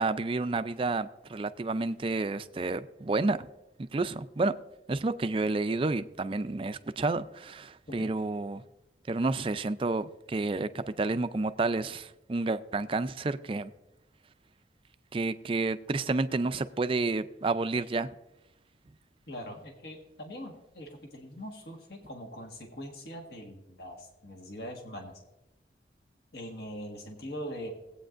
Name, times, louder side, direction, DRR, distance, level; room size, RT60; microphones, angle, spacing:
voice 1, 0.0-3.5 3.8-4.6 4.9-8.6 9.1-13.7 15.1-18.1, right 3 dB, 30° right, 0.4 m, -30 dB
voice 2, 19.3-25.1 26.3-27.7, equal, 65° left, 1.6 m, -42 dB
18.0 x 8.6 x 2.5 m
head